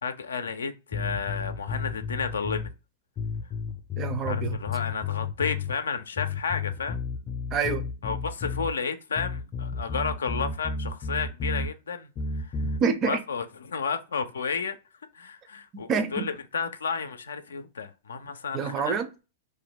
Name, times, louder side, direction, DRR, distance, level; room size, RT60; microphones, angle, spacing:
voice 1, 0.0-2.7 4.3-7.0 8.0-12.1 12.4-12.8 13.0-14.8 15.1-19.0, left 5 dB, 90° left, 0.4 m, -32 dB
sound 1, 0.9-2.7 3.2-5.7 6.2-8.7 9.2-11.7 12.1-12.8, left 4 dB, 30° left, 0.5 m, -32 dB
voice 2, 4.0-4.6 7.5-7.8 12.8-13.2 15.7-16.3 18.5-19.2, right 5 dB, 30° right, 0.5 m, -27 dB
2.6 x 2.1 x 3.9 m
hypercardioid pair, 120°, 0 cm